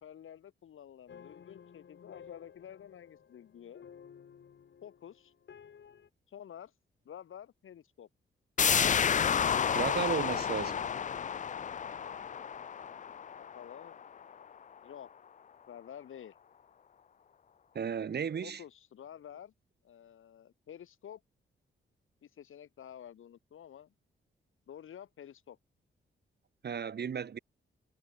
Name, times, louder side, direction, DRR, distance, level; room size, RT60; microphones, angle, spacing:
voice 1, 0.0-3.9 4.8-5.3 6.3-6.7 7.0-8.1 13.0-14.5 14.8-15.1 15.7-16.4 18.4-19.5 19.8-21.2 22.2-23.9 24.7-25.6, left 9 dB, 80° left, 2.8 m, -50 dB
sound 1, 1.1-6.1, left 7 dB, 65° left, 2.6 m, -54 dB
sound 2, 8.6-14.1 14.4-14.5, left 7 dB, 40° left, 0.4 m, -30 dB
voice 2, 9.7-10.9 17.7-18.6 26.6-27.4, right 7 dB, 55° right, 1.3 m, -34 dB
cardioid pair, 90°, 21 cm